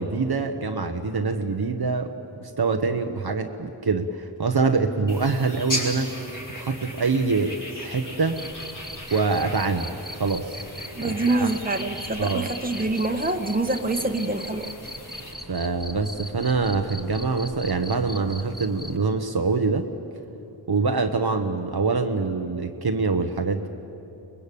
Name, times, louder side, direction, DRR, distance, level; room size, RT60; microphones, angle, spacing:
voice 1, 0.0-2.1 2.4-6.1 6.6-8.4 9.1-10.6 11.0-11.5 12.2-12.5 15.5-19.8 20.7-23.7, right 4 dB, 50° right, 5 dB, 1.2 m, -25 dB
sound 1, 5.1-15.3, left 1 dB, 40° left, 5.3 m, -37 dB
Cricket, 8.3-19.0, equal, ahead, 1.3 m, -41 dB
voice 2, 10.9-14.7, right 2 dB, 20° right, 5 dB, 1.6 m, -26 dB
23.5 x 21.0 x 8.5 m, 3.0 s
wide cardioid pair, 60°, 46 cm